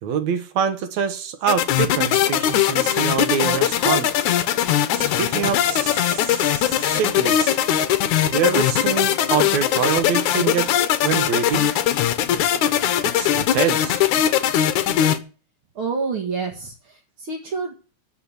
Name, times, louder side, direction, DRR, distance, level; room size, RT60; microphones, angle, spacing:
voice 1, 0.0-4.1 4.9-7.6 8.3-10.7 11.0-11.7 13.0-14.0, right 7 dB, 60° right, 9 dB, 2.4 m, -25 dB
sound 1, 1.5-15.2, left 11 dB, 70° left, 2.2 m, -20 dB
voice 2, 15.7-17.7, right 4 dB, 45° right, 0 dB, 2.4 m, -28 dB
14.5 x 5.9 x 8.1 m, 0.37 s
omnidirectional pair, 3.9 m